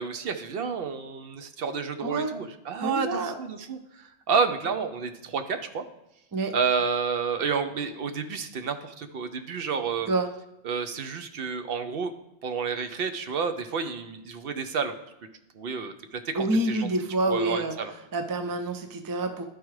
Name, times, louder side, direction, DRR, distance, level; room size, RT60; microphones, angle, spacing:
voice 1, 0.0-5.8 6.5-10.1 10.6-12.1 12.4-15.0 15.5-16.9 17.3-17.9, right 5 dB, 65° right, 8 dB, 0.7 m, -30 dB
voice 2, 2.0-2.3 2.8-3.3 6.3-6.5 10.1-10.3 16.3-17.8 18.1-19.4, right 2 dB, 30° right, 7 dB, 0.4 m, -27 dB
11.5 x 4.7 x 3.1 m, 0.87 s
omnidirectional pair, 1.1 m